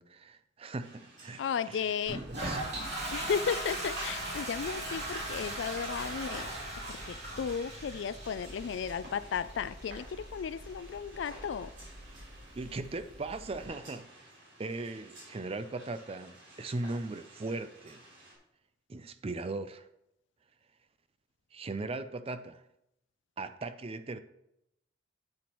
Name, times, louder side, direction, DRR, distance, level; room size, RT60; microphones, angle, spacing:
voice 1, 0.0-2.6 12.5-14.1 14.6-18.0 18.9-19.9 21.5-22.6 23.4-24.2, right 2 dB, 30° right, 0.4 m, -38 dB
sound 1, 0.8-18.3, right 1 dB, 75° right, 3.4 m, -53 dB
voice 2, 1.4-2.2 3.1-6.5 6.9-11.7, left 7 dB, 65° left, 0.3 m, -34 dB
Toilet flush, 2.1-13.6, right 1 dB, 60° right, 2.8 m, -40 dB
10.0 x 8.7 x 3.0 m
head